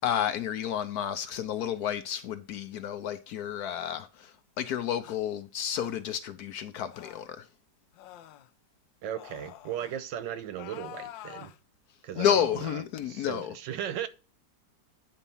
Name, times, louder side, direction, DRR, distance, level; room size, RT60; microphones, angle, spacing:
voice 1, 0.0-7.5 12.2-13.6, left 9 dB, 70° left, 1.0 m, -31 dB
sound 1, 5.0-5.2 5.7-6.0 6.9-7.4 7.9-8.5 9.1-10.0 10.5-11.6 12.1-12.5, left 13 dB, 90° left, 1.3 m, -47 dB
voice 2, 9.0-11.5 12.0-14.1, right 10 dB, 75° right, 1.4 m, -37 dB
9.1 x 4.3 x 5.4 m
omnidirectional pair, 2.0 m